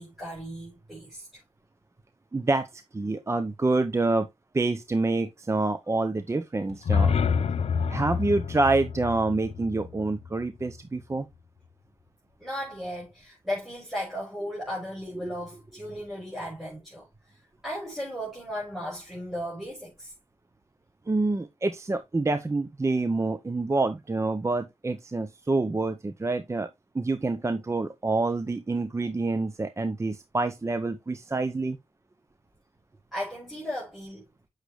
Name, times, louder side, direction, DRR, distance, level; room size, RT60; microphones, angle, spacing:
voice 1, 0.0-1.4 12.4-17.1 17.6-20.1 33.1-34.2, equal, 5° right, 6.0 m, -36 dB
voice 2, 2.3-4.3 4.5-7.2 7.9-11.3 15.2-15.3 21.1-26.7 26.9-31.8, right 3 dB, 25° right, 0.7 m, -27 dB
sound 1, 6.7-10.8, left 6 dB, 70° left, 0.6 m, -28 dB
8.2 x 6.5 x 3.1 m
cardioid pair, 75°, 11 cm